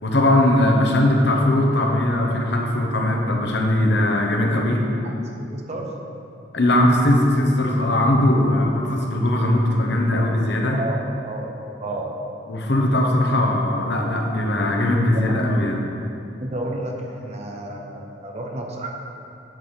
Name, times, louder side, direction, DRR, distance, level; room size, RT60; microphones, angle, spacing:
voice 1, 0.0-4.8 6.5-10.8 12.5-15.8, left 1 dB, 60° left, 0 dB, 1.1 m, -19 dB
voice 2, 5.0-6.0 10.7-12.4 15.1-15.8 16.2-18.9, right 2 dB, 35° right, 1 dB, 0.9 m, -32 dB
9.2 x 4.1 x 7.1 m, 2.7 s
head